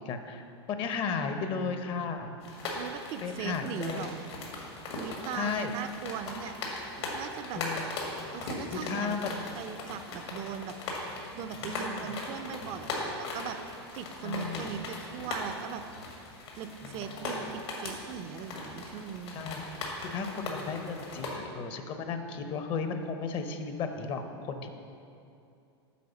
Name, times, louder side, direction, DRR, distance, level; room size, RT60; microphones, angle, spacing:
voice 1, 0.0-2.3 3.2-4.1 5.3-5.8 7.5-7.8 8.8-9.6 11.6-12.1 14.2-14.8 16.8-17.3 19.3-24.7, left 5 dB, 40° left, 7 dB, 0.8 m, -35 dB
sound 1, 2.4-21.3, left 2 dB, 75° left, 2.0 m, -39 dB
voice 2, 2.8-4.2 5.0-6.6 7.0-7.6 8.1-9.2 9.6-10.7 11.3-13.6 13.9-15.8 16.6-19.4, right 8 dB, 45° right, 9 dB, 0.5 m, -39 dB
8.4 x 4.8 x 7.0 m, 2.6 s
hypercardioid pair, 110°, 14 cm